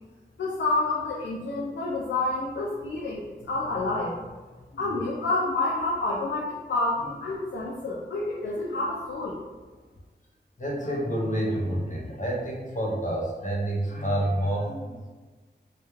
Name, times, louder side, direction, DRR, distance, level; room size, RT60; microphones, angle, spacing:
voice 1, 0.4-4.3 4.8-9.4, left 2 dB, 85° left, -5 dB, 0.4 m, -28 dB
voice 2, 10.6-15.1, right 1 dB, 45° left, -3 dB, 0.7 m, -28 dB
2.2 x 2.2 x 3.0 m, 1.3 s
cardioid pair, 40°, 19 cm